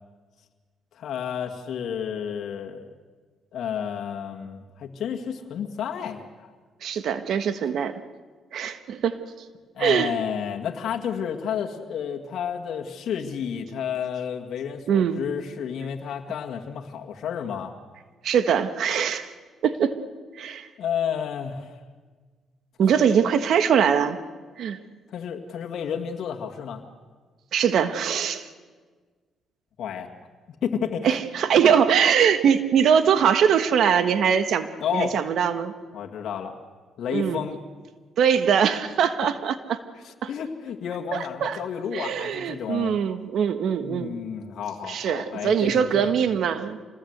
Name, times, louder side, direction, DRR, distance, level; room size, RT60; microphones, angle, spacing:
voice 1, 0.9-2.8 3.5-6.5 9.7-17.7 20.8-21.8 25.1-26.8 29.8-30.1 30.6-31.2 31.6-31.7 34.8-35.2 35.9-36.5 37.0-37.6 40.0-43.0 43.8-46.1, left 8 dB, 70° left, 2 dB, 2.0 m, -31 dB
voice 2, 6.8-8.0 8.5-9.2 9.8-10.1 14.9-15.2 18.2-19.3 19.6-20.0 20.3-20.7 22.8-24.2 24.6-24.8 27.5-28.5 31.0-35.7 37.1-37.4 38.2-39.8 40.2-40.3 41.1-41.6 41.9-44.1 44.9-46.8, right 7 dB, 70° right, 11 dB, 1.4 m, -22 dB
26.0 x 19.0 x 8.1 m, 1.5 s
cardioid pair, 90°, 0 cm